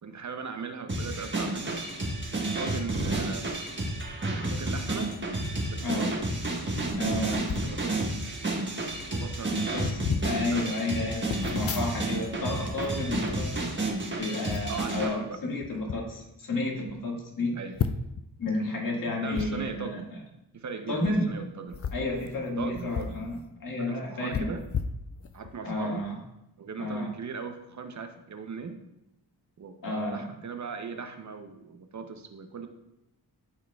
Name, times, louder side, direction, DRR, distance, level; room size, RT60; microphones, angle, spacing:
voice 1, 0.0-1.9 2.3-3.5 4.5-5.1 5.7-6.1 6.6-8.1 9.1-10.7 14.7-15.4 17.6-17.8 19.2-20.1 20.5-22.1 22.6-23.3 23.8-24.6 25.3-26.0 26.6-28.8 29.6-32.7, right 5 dB, 45° right, 7 dB, 0.7 m, -39 dB
sound 1, 0.9-15.1, right 2 dB, 30° right, 1.3 m, -31 dB
voice 2, 5.8-6.2 7.0-7.6 9.4-13.8 14.2-17.5 18.4-20.2 20.9-21.3 21.9-24.5 25.6-26.2 26.8-27.1 29.8-30.4, left 2 dB, 55° left, -1 dB, 1.8 m, -31 dB
sound 2, 7.4-7.7 8.6-8.7 8.9-9.2 9.7-10.3 11.3-12.3 12.6-14.0 14.5-14.8 15.6-16.0 16.5-16.6 16.9-17.0 17.7-18.2 19.3-19.5 20.9-21.1 21.7-23.2 23.5-23.6 24.3-25.5 26.0-26.2, left 6 dB, 35° left, 0.5 m, -34 dB
12.5 x 4.6 x 2.3 m, 0.87 s
cardioid pair, 85°, 39 cm